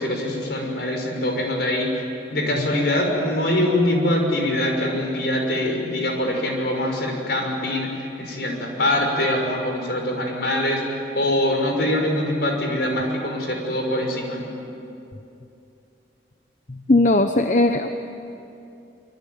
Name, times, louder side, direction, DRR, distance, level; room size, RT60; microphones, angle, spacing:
voice 1, 0.0-2.0 2.3-14.5, left 1 dB, 65° left, 2 dB, 5.9 m, -23 dB
voice 2, 16.7-17.9, left 2 dB, 45° left, 7 dB, 0.9 m, -18 dB
26.0 x 24.0 x 9.5 m, 2.7 s
head